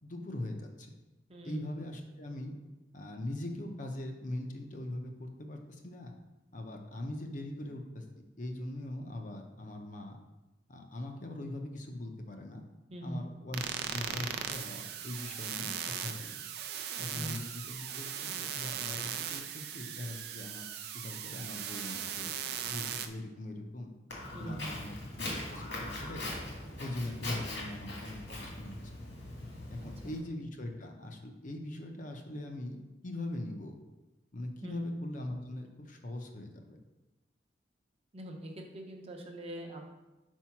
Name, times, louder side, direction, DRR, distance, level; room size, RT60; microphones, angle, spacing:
voice 1, 0.0-0.9 1.4-2.5 2.9-6.1 6.5-8.0 8.4-10.2 10.7-12.6 13.0-13.6 13.9-16.3 17.0-20.7 20.9-22.3 22.6-23.9 24.4-26.2 26.8-29.0 29.7-32.8 33.0-33.8 34.3-36.8, left 1 dB, 45° left, 3 dB, 0.7 m, -41 dB
voice 2, 1.3-1.7 12.9-13.2 17.1-17.4 24.3-24.8 29.8-30.1 34.6-34.8 38.1-39.9, right 1 dB, 35° right, 2 dB, 0.8 m, -43 dB
sound 1, 13.5-23.1, right 9 dB, 60° right, 0.5 m, -38 dB
Walk footsteps, 24.1-30.2, left 1 dB, 75° left, 1.9 m, -41 dB
4.6 x 4.5 x 5.8 m, 1.1 s
head